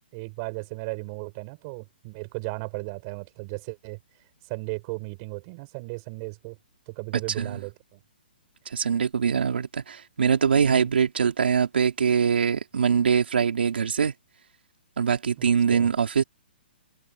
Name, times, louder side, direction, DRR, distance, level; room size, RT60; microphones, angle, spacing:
voice 1, 0.1-4.0 4.5-6.6 6.9-8.0 10.7-10.9 15.4-15.9, right 29 dB, 25° right, 7.0 m, -36 dB
voice 2, 8.7-14.1 15.0-16.2, right 6 dB, 75° right, 3.1 m, -23 dB
hypercardioid pair, 175°, 6 cm